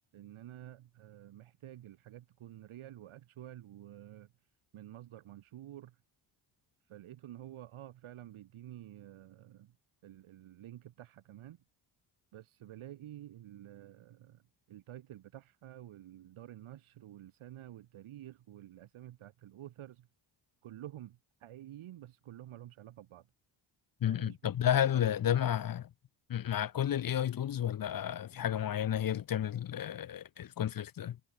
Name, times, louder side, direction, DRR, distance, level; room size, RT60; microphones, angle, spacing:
voice 1, 0.1-4.3 4.7-6.0 6.8-9.8 10.0-11.6 12.3-14.4 14.7-20.1 20.6-23.3 24.1-25.4, right 13 dB, 80° right, 5.9 m, -50 dB
voice 2, 24.0-25.8 26.3-31.2, left 10 dB, 45° left, 0.9 m, -31 dB
cardioid pair, 100°, 48 cm